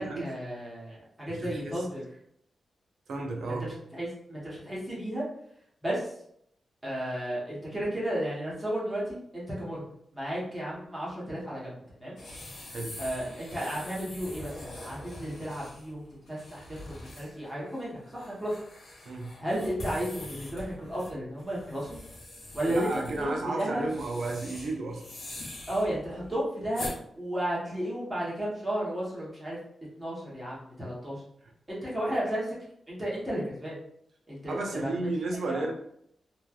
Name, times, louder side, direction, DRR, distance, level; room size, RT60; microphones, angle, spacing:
voice 1, 0.0-2.0 3.5-5.2 5.8-6.2 6.8-9.8 10.1-12.2 13.0-18.5 19.4-22.0 22.5-23.8 25.7-26.9 27.2-29.6 30.0-31.2 31.7-32.5 32.9-33.8 34.3-35.1 35.5-35.7, equal, 10° right, -7 dB, 1.0 m, -33 dB
voice 2, 1.3-1.8 3.1-3.7 12.7-13.0 19.1-19.4 22.7-25.1 34.5-35.7, right 2 dB, 65° right, 1 dB, 0.5 m, -33 dB
sound 1, 12.2-27.0, left 1 dB, 70° left, 0.9 m, -44 dB
3.1 x 2.3 x 2.3 m, 0.70 s
wide cardioid pair, 175°, 0 cm